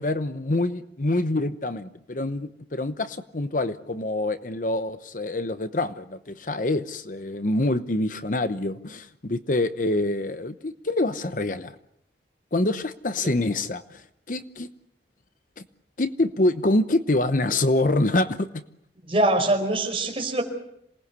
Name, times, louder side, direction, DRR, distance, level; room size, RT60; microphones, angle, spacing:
voice 1, 0.0-11.7 12.5-14.7 16.0-18.6, left 2 dB, 45° left, 11 dB, 0.9 m, -26 dB
voice 2, 19.1-20.4, right 1 dB, 30° right, 2 dB, 5.1 m, -23 dB
27.0 x 19.5 x 8.2 m, 0.76 s
head